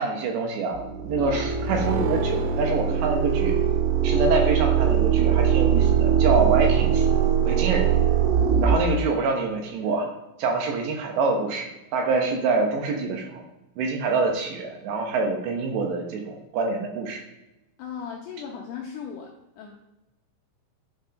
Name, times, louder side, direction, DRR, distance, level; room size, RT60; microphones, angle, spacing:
voice 1, 0.0-3.5 4.0-7.1 7.4-7.9 8.6-10.1 10.4-13.4 13.8-17.2, right 4 dB, 70° right, 2 dB, 3.0 m, -26 dB
sound 1, 0.7-8.8, right 8 dB, 90° right, 3.5 m, -21 dB
voice 2, 17.8-19.7, left 7 dB, 80° left, 0 dB, 2.4 m, -37 dB
11.5 x 5.1 x 5.2 m, 0.95 s
omnidirectional pair, 5.8 m